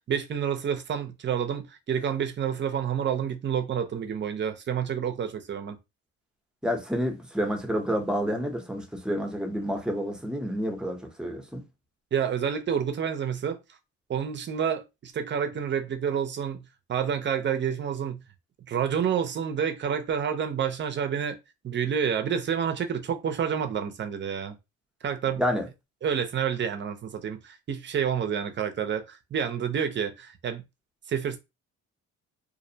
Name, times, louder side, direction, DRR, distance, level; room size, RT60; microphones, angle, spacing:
voice 1, 0.0-5.8 12.1-13.6 14.1-16.6 16.9-18.2 18.7-21.4 21.6-24.6 25.0-25.4 26.0-30.6 31.1-31.4, right 8 dB, 40° right, 0.5 m, -29 dB
voice 2, 6.6-11.6 25.3-25.7, equal, 5° right, 0.7 m, -29 dB
2.5 x 2.0 x 2.7 m
cardioid pair, 90°, 30 cm